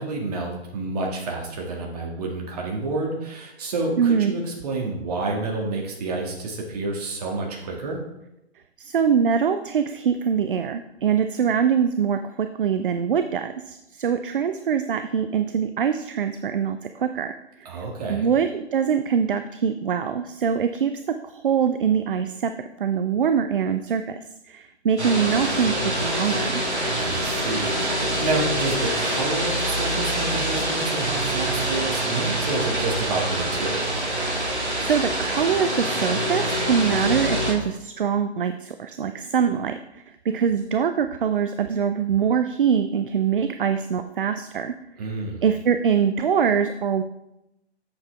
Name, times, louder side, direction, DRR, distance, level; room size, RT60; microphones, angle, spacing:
voice 1, 0.0-8.0 17.7-18.3 27.0-34.0 45.0-45.4, right 3 dB, 35° right, 0 dB, 1.8 m, -29 dB
voice 2, 4.0-4.3 8.8-17.3 17.6-20.9 21.2-22.5 22.8-26.6 34.4-44.7 45.4-47.0, right 7 dB, 50° right, 9 dB, 0.5 m, -23 dB
sound 1, 25.0-37.5, right 1 dB, 80° right, 2.3 m, -25 dB
7.9 x 7.0 x 3.3 m, 0.89 s
figure-of-eight pair, 125°, 33 cm